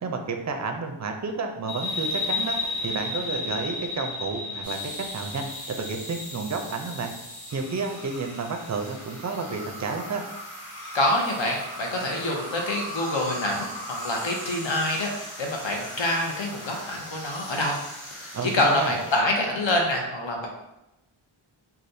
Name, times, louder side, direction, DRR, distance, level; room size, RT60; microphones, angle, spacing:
voice 1, 0.0-7.1 7.5-10.2 18.3-18.9, right 4 dB, 35° right, 4 dB, 0.4 m, -31 dB
sound 1, 1.7-8.9, left 3 dB, 5° left, 0.6 m, -33 dB
sound 2, 4.6-19.2, equal, 80° left, 1.4 m, -39 dB
voice 2, 10.9-17.8 18.1-20.5, left 1 dB, 65° left, 1 dB, 0.8 m, -26 dB
3.3 x 2.3 x 2.6 m, 0.92 s
wide cardioid pair, 65°, 49 cm